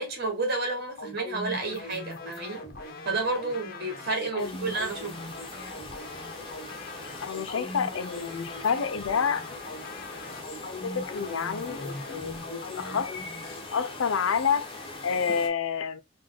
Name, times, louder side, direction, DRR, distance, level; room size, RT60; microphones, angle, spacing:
voice 1, 0.0-2.6 3.0-5.3, right 3 dB, 55° right, 1.4 m, -31 dB
sound 1, 1.0-13.6, left 2 dB, 50° left, 0.9 m, -40 dB
sound 2, 4.4-15.5, left 2 dB, 25° left, 1.0 m, -42 dB
voice 2, 7.2-9.4 10.8-13.1 13.7-14.7 15.0-16.0, left 6 dB, 85° left, 0.5 m, -28 dB
3.3 x 2.6 x 3.8 m
head